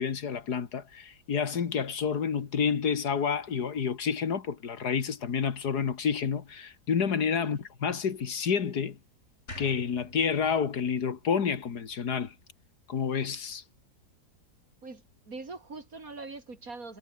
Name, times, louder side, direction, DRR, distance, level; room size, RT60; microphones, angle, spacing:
voice 1, 0.0-9.0 9.6-12.3 12.9-13.6, left 6 dB, 75° left, 2.2 m, -29 dB
sound 1, 9.5-12.6, left 1 dB, 40° left, 7.5 m, -48 dB
voice 2, 14.8-17.0, right 3 dB, 55° right, 3.9 m, -43 dB
omnidirectional pair, 1.8 m